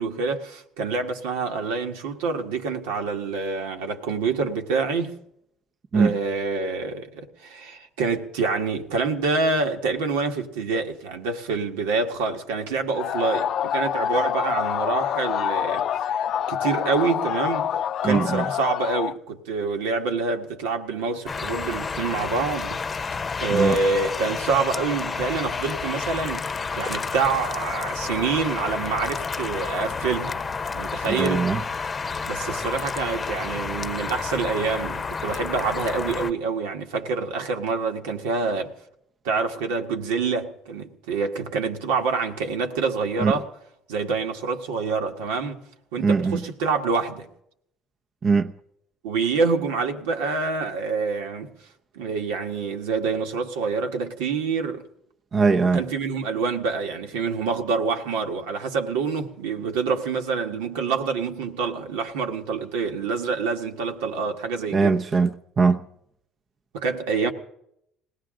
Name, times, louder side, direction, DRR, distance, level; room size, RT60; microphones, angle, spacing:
voice 1, 0.0-5.2 5.9-17.7 18.0-22.8 23.4-26.5 26.7-30.4 30.7-31.4 32.3-38.7 39.2-43.4 43.9-45.6 45.9-47.3 49.0-51.5 51.9-54.9 55.7-65.0 66.7-67.3, right 4 dB, 85° right, 1.8 m, -26 dB
sound 1, 13.0-19.2, left 9 dB, 60° left, 0.5 m, -26 dB
voice 2, 18.0-18.4 23.5-23.8 31.1-31.6 43.2-43.3 46.0-46.4 48.2-48.5 55.3-55.8 64.7-65.8, right 4 dB, 40° right, 0.8 m, -21 dB
sound 2, 21.3-36.3, left 5 dB, 30° left, 0.8 m, -30 dB
21.0 x 17.5 x 3.8 m
hypercardioid pair, 70°, 0 cm